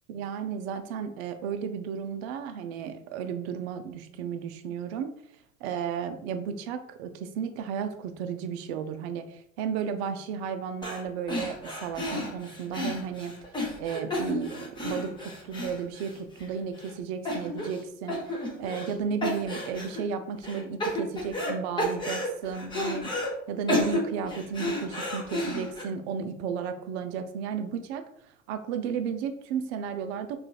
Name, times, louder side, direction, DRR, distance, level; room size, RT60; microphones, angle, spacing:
voice 1, 0.1-5.1 5.6-13.3 13.8-23.1 23.5-28.0 28.5-30.4, right 7 dB, 50° right, 8 dB, 0.5 m, -33 dB
sound 1, 10.8-11.0 11.3-16.5 16.8-16.9 17.2-17.8 18.1-18.9 19.2-20.0 20.4-21.5 21.8-23.3 23.7-25.8, left 1 dB, 10° left, 0.7 m, -32 dB
3.8 x 2.4 x 2.3 m, 0.70 s
figure-of-eight pair, 80°, 42 cm